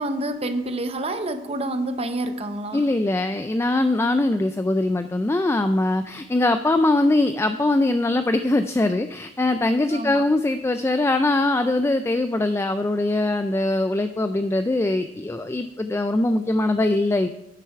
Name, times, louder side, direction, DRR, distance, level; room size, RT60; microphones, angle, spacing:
voice 1, 0.0-2.9 9.9-10.2, right 1 dB, 35° right, 9 dB, 0.7 m, -28 dB
voice 2, 2.7-17.3, left 2 dB, 15° left, 9 dB, 0.3 m, -22 dB
9.4 x 6.7 x 4.6 m, 0.88 s
head